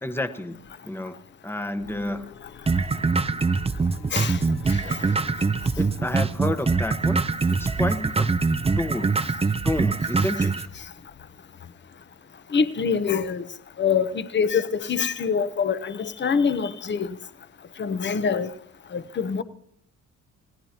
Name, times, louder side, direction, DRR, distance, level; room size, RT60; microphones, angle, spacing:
voice 1, 0.0-1.2 1.4-2.4 5.8-7.2 7.6-8.3 8.8-9.2 9.6-10.7, left 1 dB, 10° left, 1.1 m, -30 dB
sound 1, 1.8-9.2, left 6 dB, 60° left, 1.6 m, -48 dB
sound 2, 2.7-10.7, right 4 dB, 20° right, 0.7 m, -24 dB
voice 2, 4.7-5.0 10.4-10.5 12.5-13.5 13.8-17.1 17.8-18.5 18.9-19.4, left 6 dB, 35° left, 1.0 m, -25 dB
29.0 x 17.0 x 2.9 m
cardioid pair, 90°, 30 cm